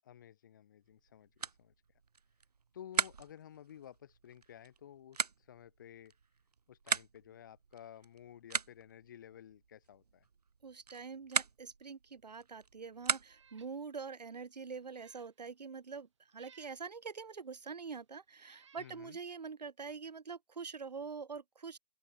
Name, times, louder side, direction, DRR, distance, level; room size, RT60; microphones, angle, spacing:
voice 1, 0.0-1.7 2.7-6.1 6.7-10.3 18.8-19.2, left 10 dB, 30° left, 1.9 m, -54 dB
sound 1, 0.8-13.7, right 5 dB, 70° right, 3.6 m, -41 dB
voice 2, 10.6-21.8, right 5 dB, 85° right, 3.3 m, -45 dB
Meow, 13.2-13.8 14.2-14.3 14.8-15.3 16.3-16.8 17.7-17.8 18.4-19.0, right 7 dB, 45° right, 4.6 m, -64 dB
open air
hypercardioid pair, 175°, 21 cm